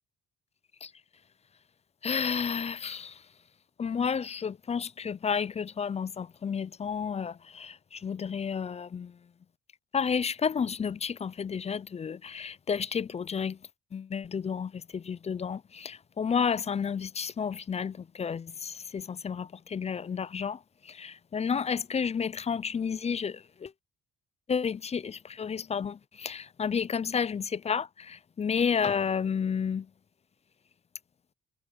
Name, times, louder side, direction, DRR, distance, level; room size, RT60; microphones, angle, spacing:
voice 1, 2.0-3.2 3.8-9.2 9.9-13.6 13.9-20.6 20.8-23.7 24.5-29.9, left 6 dB, 20° left, 0.3 m, -31 dB
cardioid pair, 90°, 30 cm